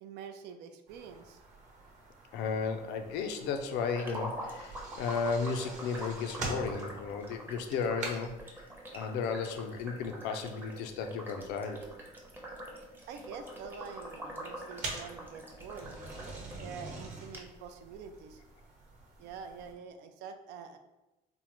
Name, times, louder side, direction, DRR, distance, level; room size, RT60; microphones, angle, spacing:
voice 1, 0.0-1.4 13.1-16.0 16.6-18.4 19.2-20.8, right 6 dB, 85° right, 7 dB, 0.4 m, -46 dB
sound 1, 0.9-19.7, right 3 dB, 45° right, 1.0 m, -46 dB
voice 2, 2.3-8.6 8.9-11.8, left 5 dB, 85° left, 6 dB, 0.4 m, -34 dB
sound 2, 3.9-16.6 17.0-17.1 17.3-17.4, right 1 dB, 10° right, 0.6 m, -45 dB
3.5 x 2.1 x 2.9 m, 1.0 s
cardioid pair, 110°, 17 cm